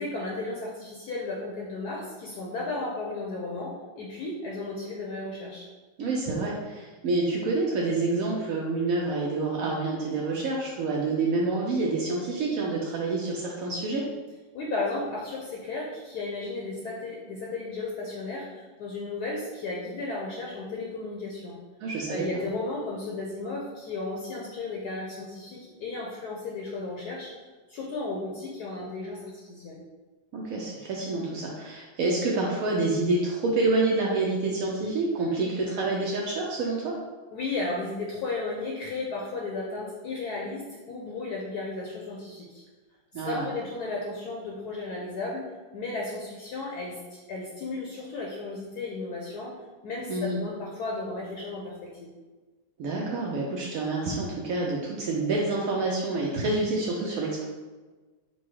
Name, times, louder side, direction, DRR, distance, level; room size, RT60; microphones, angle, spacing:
voice 1, 0.0-5.7 14.5-21.6 22.1-27.3 27.7-29.8 37.3-42.6 43.3-51.7 52.0-52.1, left 3 dB, 70° left, -3 dB, 1.0 m, -34 dB
voice 2, 6.0-14.0 21.8-22.3 30.3-37.0 43.1-43.5 50.1-50.4 52.8-57.5, right 3 dB, 85° right, -2 dB, 0.7 m, -27 dB
4.1 x 2.3 x 4.6 m, 1.3 s
omnidirectional pair, 2.1 m